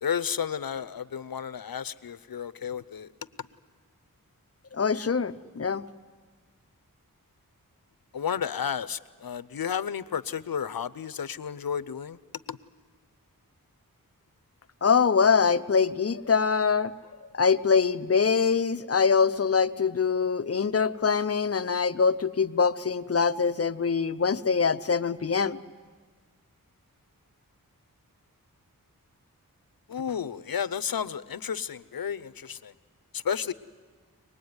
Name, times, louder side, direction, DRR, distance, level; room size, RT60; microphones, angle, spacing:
voice 1, 0.0-3.1 8.1-12.2 12.5-12.6 29.9-32.7 33.1-33.5, left 7 dB, 75° left, 15 dB, 0.7 m, -32 dB
voice 2, 4.7-5.8 14.8-16.9 17.3-25.6, left 5 dB, 40° left, 11 dB, 0.7 m, -24 dB
24.0 x 20.0 x 9.5 m, 1.5 s
wide cardioid pair, 70°, 35 cm